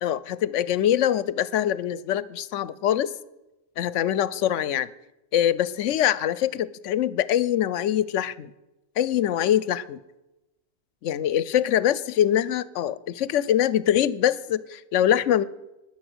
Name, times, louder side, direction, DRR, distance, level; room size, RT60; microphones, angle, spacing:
voice 1, 0.0-3.1 3.8-4.9 5.3-8.5 9.0-10.0 11.0-15.4, left 11 dB, 65° left, 19 dB, 0.9 m, -23 dB
20.0 x 6.9 x 8.0 m, 1.0 s
omnidirectional pair, 1.4 m